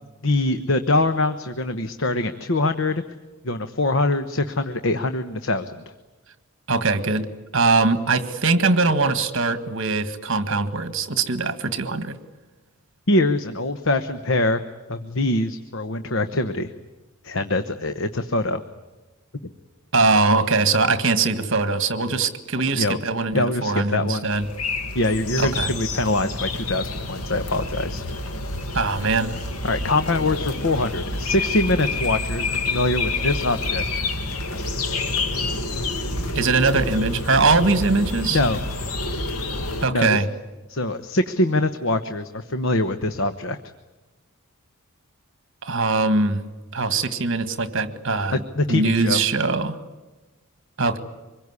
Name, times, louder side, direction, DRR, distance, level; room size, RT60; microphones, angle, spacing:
voice 1, 0.2-3.0 3.4-5.8 13.1-14.6 14.9-16.7 17.2-18.6 22.8-23.0 23.3-24.3 24.9-28.0 29.6-34.0 38.3-38.6 39.9-40.2 40.7-43.6 48.3-49.2, left 2 dB, 60° left, 9 dB, 1.1 m, -23 dB
voice 2, 6.7-7.3 7.5-12.2 19.9-24.5 25.4-25.7 28.7-29.4 36.4-38.4 39.8-40.3 45.6-46.5 46.7-48.4 48.7-49.8 50.8-51.0, right 3 dB, 55° right, 11 dB, 1.8 m, -21 dB
sound 1, 24.3-39.9, left 2 dB, 80° left, 2.0 m, -28 dB
25.5 x 22.0 x 9.7 m, 1.2 s
head